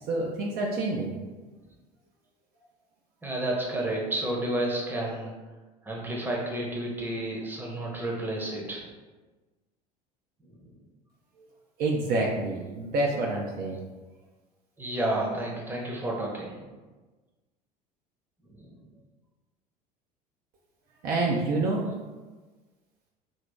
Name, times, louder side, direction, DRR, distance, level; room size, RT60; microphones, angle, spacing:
voice 1, 0.1-1.1 11.8-13.8 21.0-21.8, right 2 dB, 45° right, -2 dB, 0.5 m, -27 dB
voice 2, 3.2-5.3 5.8-8.8 12.8-12.9 14.8-16.7 18.6-18.7, right 1 dB, 10° right, -2 dB, 0.8 m, -31 dB
2.8 x 2.7 x 3.4 m, 1.3 s
figure-of-eight pair, 70°, 21 cm